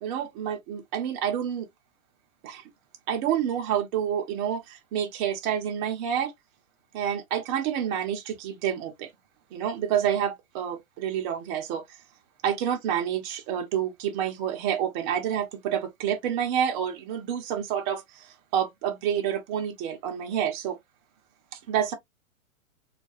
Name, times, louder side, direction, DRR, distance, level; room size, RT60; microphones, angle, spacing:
voice 1, 0.0-1.7 2.4-2.6 3.1-6.3 6.9-9.1 9.5-11.8 12.4-20.8 21.5-21.9, right 9 dB, 35° right, 0.7 m, -28 dB
2.4 x 2.2 x 2.4 m
hypercardioid pair, 130°, 42 cm